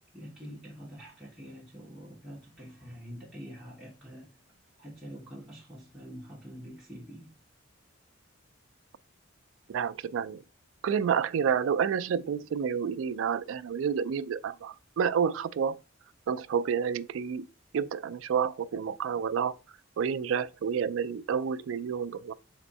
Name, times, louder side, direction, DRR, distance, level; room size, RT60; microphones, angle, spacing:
voice 1, 0.1-4.3 4.8-7.4, equal, ahead, 1.0 m, -46 dB
voice 2, 9.7-10.4 10.8-15.7 16.3-17.4 17.7-19.6 20.0-22.3, right 7 dB, 70° right, 0.3 m, -29 dB
3.6 x 3.4 x 4.0 m
head